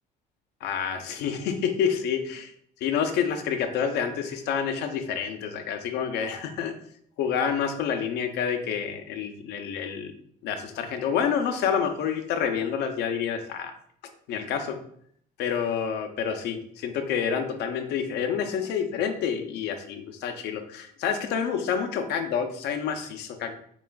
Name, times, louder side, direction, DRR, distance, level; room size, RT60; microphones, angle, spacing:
voice 1, 0.6-2.5 2.8-6.7 7.2-10.1 10.4-13.7 14.3-14.8 15.4-23.6, left 7 dB, 85° left, 7 dB, 0.6 m, -28 dB
6.9 x 2.4 x 2.3 m, 0.66 s
cardioid pair, 110°, 17 cm